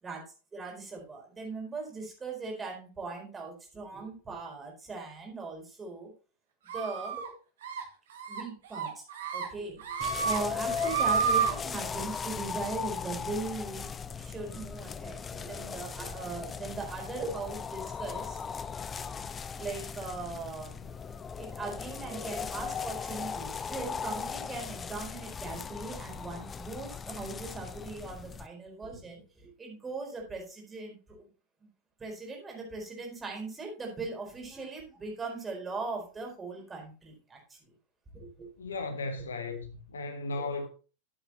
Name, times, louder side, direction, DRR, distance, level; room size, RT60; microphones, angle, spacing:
voice 1, 0.5-6.1 6.7-7.2 8.3-9.0 9.3-13.9 14.2-18.4 19.5-20.9 21.4-31.3 32.0-37.7 38.1-38.5, right 3 dB, 15° right, 4.4 m, -39 dB
sound 1, 6.7-7.3 7.6-7.8 8.2-8.4 8.7-9.5 9.8-10.4 10.7-11.5, right 6 dB, 60° right, 1.9 m, -29 dB
sound 2, 10.0-28.5, left 6 dB, 20° left, 0.6 m, -38 dB
voice 2, 38.6-40.7, left 3 dB, 70° left, 1.5 m, -35 dB
13.0 x 7.9 x 2.9 m
figure-of-eight pair, 90°, 0 cm